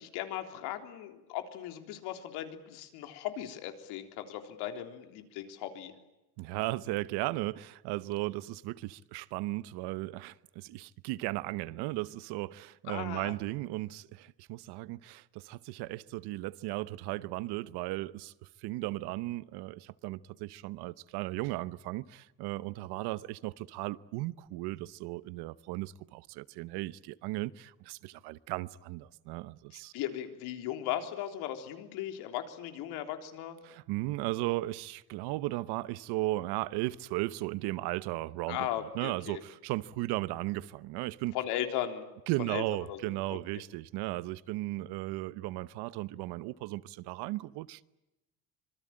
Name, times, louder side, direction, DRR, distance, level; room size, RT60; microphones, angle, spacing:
voice 1, 0.0-5.9 12.9-13.3 29.7-33.6 38.5-39.4 41.3-42.1 42.5-42.6 42.9-43.0 43.3-43.4, left 11 dB, 85° left, 3.6 m, -37 dB
voice 2, 6.4-18.3 18.6-29.9 33.6-38.7 38.9-41.3 42.3-47.8, right 18 dB, 80° right, 1.0 m, -36 dB
26.0 x 24.0 x 8.8 m
cardioid pair, 170°, 39 cm